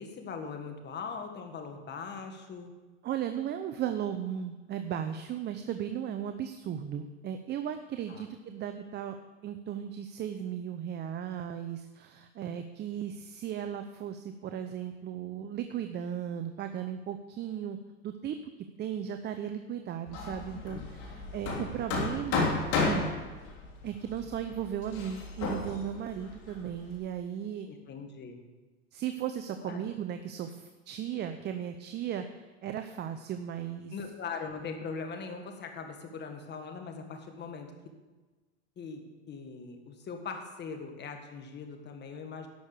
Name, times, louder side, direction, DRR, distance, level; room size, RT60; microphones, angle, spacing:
voice 1, 0.0-2.7 8.1-8.3 27.7-28.4 29.6-29.8 33.9-37.7 38.8-39.0 39.3-42.5, left 5 dB, 30° left, 5 dB, 1.7 m, -40 dB
voice 2, 3.0-9.2 9.4-17.8 18.0-18.4 18.8-22.5 22.8-23.1 23.8-27.7 28.9-33.9, right 9 dB, 30° right, 8 dB, 0.6 m, -36 dB
Hammer, 20.1-27.0, left 4 dB, 60° left, 3.0 m, -33 dB
11.5 x 6.4 x 6.7 m, 1.2 s
supercardioid pair, 110°, 34 cm